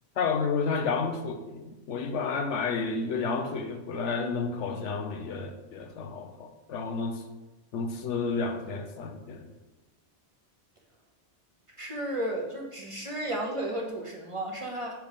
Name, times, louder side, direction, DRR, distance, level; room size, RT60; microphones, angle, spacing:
voice 1, 0.2-7.2 7.7-9.5, left 4 dB, 75° left, 6 dB, 1.0 m, -31 dB
voice 2, 11.8-14.9, right 1 dB, 30° right, -1 dB, 0.9 m, -33 dB
5.2 x 4.6 x 5.0 m, 1.1 s
omnidirectional pair, 1.2 m